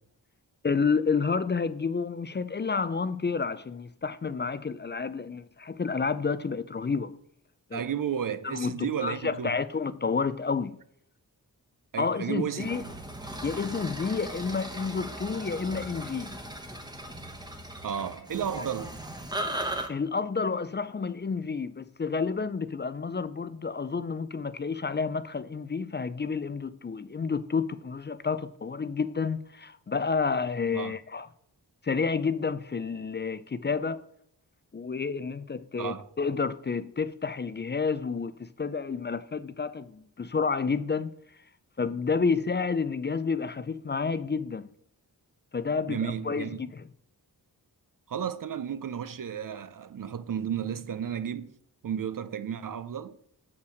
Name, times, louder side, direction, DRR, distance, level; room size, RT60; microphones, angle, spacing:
voice 1, 0.6-7.2 7.7-7.8 8.4-10.8 12.0-12.8 13.4-16.4 19.9-31.3 31.8-34.0 34.7-41.1 41.8-44.7 45.5-46.8, left 5 dB, 30° left, 0.4 m, -30 dB
voice 2, 7.7-9.6 11.9-12.7 17.8-19.0 30.7-30.9 35.8-36.1 45.9-46.6 48.1-51.5 51.8-53.2, right 8 dB, 55° right, 0.5 m, -33 dB
sound 1, 12.6-19.9, right 1 dB, 10° right, 1.1 m, -38 dB
6.7 x 5.7 x 6.4 m
cardioid pair, 60°, 39 cm